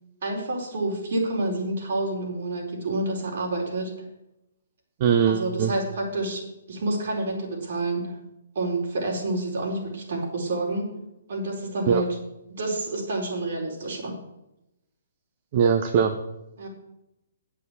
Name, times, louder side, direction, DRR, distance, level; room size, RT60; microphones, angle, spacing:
voice 1, 0.2-3.9 5.3-8.2 8.5-10.9 11.3-12.2 12.6-14.2 16.6-16.7, right 2 dB, 60° right, -1 dB, 4.6 m, -28 dB
voice 2, 5.0-5.7 11.9-12.0 15.5-16.1, right 7 dB, 40° right, 6 dB, 1.0 m, -21 dB
9.3 x 7.6 x 8.4 m, 0.89 s
figure-of-eight pair, 130°, 0 cm